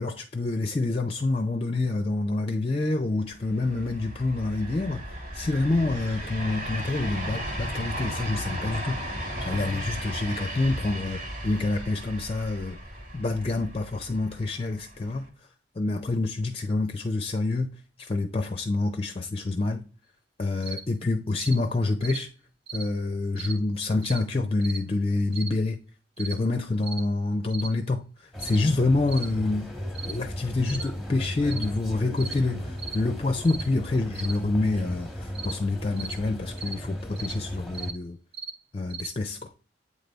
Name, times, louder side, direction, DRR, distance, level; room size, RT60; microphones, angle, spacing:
voice 1, 0.0-5.0 5.3-9.0 9.4-12.8 13.1-15.3 15.8-17.7 18.0-19.9 20.4-22.3 22.7-25.8 26.2-29.7 30.0-38.2 38.7-39.5, left 2 dB, 30° left, 0.5 m, -27 dB
sound 1, 3.3-15.3, equal, 50° right, 1.4 m, -35 dB
sound 2, 20.6-20.8 21.4-21.6 22.0-22.2 22.7-22.9 23.4-23.6 24.0-24.2 24.6-24.8 25.3-25.5 26.2-26.4 26.8-27.0 27.5-27.7 28.4-28.6 29.1-29.3 29.9-30.2 30.7-30.9 31.5-31.7 32.2-32.4 32.8-33.0 33.4-33.7 34.1-34.3 35.3-35.6 36.0-36.2 36.6-36.8 37.2-37.4 37.7-38.0 38.3-38.5 38.9-39.1, right 4 dB, 35° right, 0.6 m, -37 dB
sound 3, 28.3-37.9, equal, ahead, 1.0 m, -36 dB
8.4 x 3.4 x 3.9 m
head